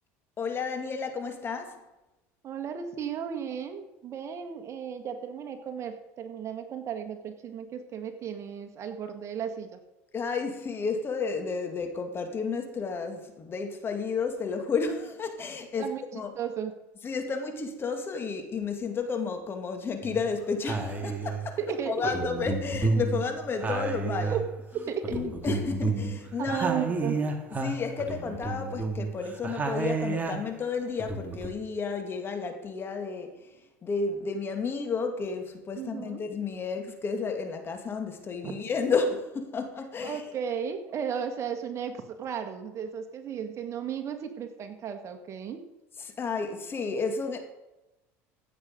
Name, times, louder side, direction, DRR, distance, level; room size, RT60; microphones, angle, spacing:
voice 1, 0.4-1.8 10.1-16.3 17.0-21.6 21.8-24.4 25.1-26.7 27.6-33.5 33.8-40.2 46.0-47.4, left 5 dB, 30° left, 2.2 m, -32 dB
voice 2, 2.4-9.8 15.8-16.7 21.6-22.1 24.3-24.4 24.9-25.3 26.4-27.2 35.8-36.2 38.4-38.5 40.0-45.6, right 7 dB, 40° right, 1.8 m, -35 dB
sound 1, 20.0-20.3 20.7-21.5 22.0-24.7 25.0-30.6 31.0-31.5, right 3 dB, 25° right, 2.1 m, -31 dB
15.5 x 7.6 x 5.3 m
supercardioid pair, 95°, 7 cm